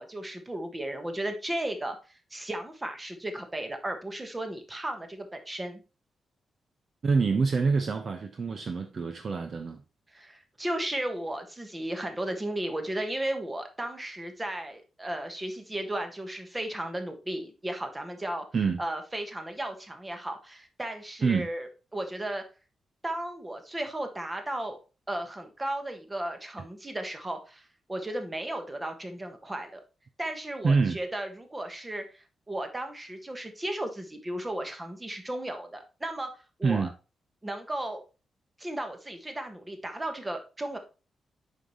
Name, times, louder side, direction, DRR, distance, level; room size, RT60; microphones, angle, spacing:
voice 1, 0.0-5.8 10.1-18.5 18.8-21.7 21.9-22.4 23.0-24.8 25.1-29.8 30.2-36.9 37.4-38.0 38.6-40.8, right 1 dB, 15° right, 1.3 m, -35 dB
voice 2, 7.0-9.8 18.5-18.8 21.2-21.5 30.6-31.0 36.6-36.9, right 4 dB, 40° right, 0.6 m, -26 dB
7.4 x 5.6 x 3.1 m
wide cardioid pair, 150°, 0 cm